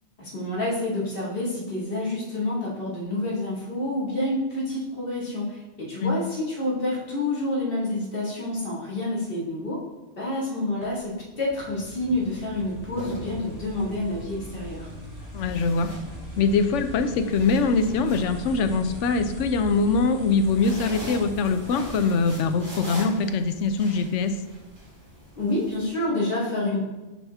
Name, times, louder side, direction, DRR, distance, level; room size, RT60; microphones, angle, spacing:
voice 1, 0.2-9.8 10.2-14.9 25.4-26.8, left 1 dB, 50° left, -5 dB, 2.2 m, -28 dB
sound 1, 10.8-23.5, left 1 dB, 10° right, 2.2 m, -41 dB
sound 2, 11.8-11.9 12.7-13.9 15.4-16.6 17.0-19.1 20.2-25.9, right 1 dB, 85° right, 2.6 m, -41 dB
voice 2, 15.3-15.9 16.4-24.3, left 4 dB, 90° left, 9 dB, 1.0 m, -23 dB
7.1 x 5.7 x 3.5 m, 1.1 s
omnidirectional pair, 1.2 m